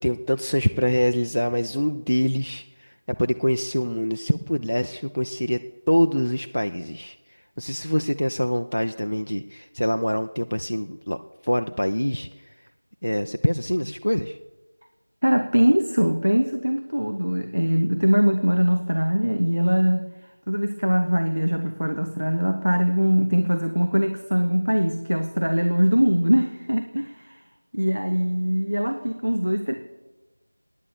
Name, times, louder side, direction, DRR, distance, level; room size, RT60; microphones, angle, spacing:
voice 1, 0.0-5.6 5.9-7.2 7.6-11.2 11.4-12.3 13.0-14.4, equal, 75° left, 7 dB, 0.6 m, -24 dB
voice 2, 15.2-20.1 20.5-27.4 27.7-29.7, equal, 65° right, 6 dB, 1.0 m, -22 dB
9.7 x 8.8 x 8.5 m, 1.1 s
figure-of-eight pair, 180°, 0 cm